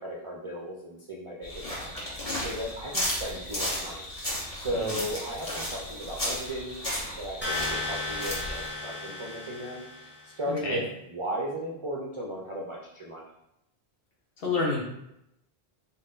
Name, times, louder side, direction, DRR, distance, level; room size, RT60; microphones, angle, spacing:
voice 1, 0.0-4.0 4.5-6.8 7.2-10.8 11.1-13.2, equal, 50° right, -4 dB, 0.4 m, -36 dB
sound 1, 1.4-8.7, equal, 35° left, 1.2 m, -34 dB
sound 2, 7.4-10.3, left 2 dB, 15° left, 0.6 m, -35 dB
voice 2, 10.4-10.8 14.4-14.8, left 3 dB, 65° left, -2 dB, 1.0 m, -29 dB
3.9 x 2.0 x 3.8 m, 0.83 s
omnidirectional pair, 1.1 m